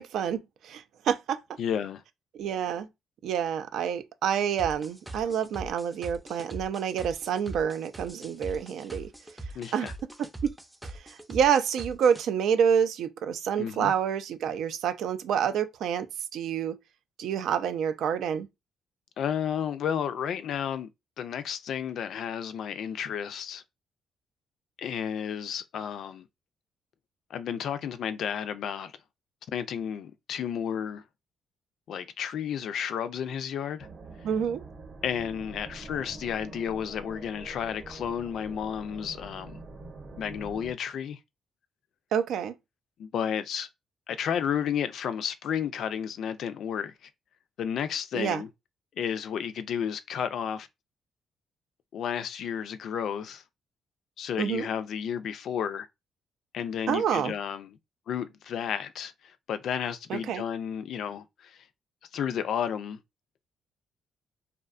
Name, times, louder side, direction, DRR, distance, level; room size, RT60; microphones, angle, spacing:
voice 1, 0.0-1.4 2.4-2.9 3.2-9.1 9.7-9.9 10.4-10.5 10.9-16.1 16.3-16.8 17.2-18.5 34.2-34.6 42.1-42.5 48.1-48.4 54.4-54.7 56.9-57.3 60.1-60.4, right 8 dB, 75° right, 0.4 m, -28 dB
voice 2, 1.6-2.0 9.5-9.9 13.6-13.9 19.2-20.9 21.2-23.6 24.8-26.3 27.3-28.9 29.5-31.0 31.9-33.9 35.0-39.6 40.2-41.2 43.0-43.7 44.1-47.1 47.6-48.5 49.0-50.7 51.9-53.4 54.2-55.9 56.5-57.8 58.1-61.6 62.1-63.0, left 8 dB, 70° left, 0.3 m, -32 dB
sound 1, 4.6-12.2, right 2 dB, 10° right, 0.4 m, -41 dB
sound 2, 33.8-40.7, right 3 dB, 40° right, 0.8 m, -45 dB
2.6 x 2.2 x 2.4 m
cardioid pair, 90°, 0 cm